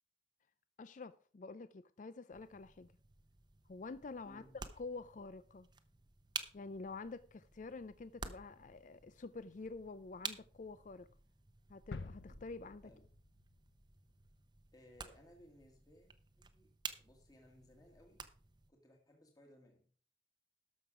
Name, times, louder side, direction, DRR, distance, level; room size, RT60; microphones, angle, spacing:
voice 1, 0.8-2.9 3.7-4.4 4.8-5.7 6.5-11.1 11.7-12.9, left 3 dB, 45° left, 0.4 m, -48 dB
sound 1, 2.3-18.7, right 5 dB, 25° right, 0.8 m, -52 dB
voice 2, 4.2-4.6 12.8-13.1 14.7-16.7 17.0-18.2 18.7-20.0, equal, 20° left, 1.8 m, -62 dB
sound 2, 11.9-13.8 14.2-14.3, left 3 dB, 80° left, 0.7 m, -50 dB
12.5 x 6.4 x 4.9 m
head